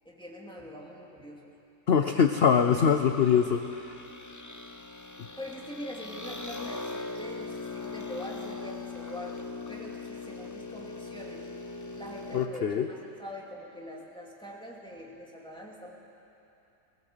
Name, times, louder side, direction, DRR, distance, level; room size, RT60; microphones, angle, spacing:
voice 1, 0.0-1.6 5.4-11.5 11.9-16.0, equal, 5° left, -3 dB, 2.4 m, -43 dB
voice 2, 1.9-3.8 12.3-12.9, left 7 dB, 55° left, 7 dB, 0.7 m, -23 dB
sound 1, 2.7-12.5, left 3 dB, 20° left, 0.4 m, -40 dB
20.0 x 16.5 x 8.0 m, 2.9 s
omnidirectional pair, 1.7 m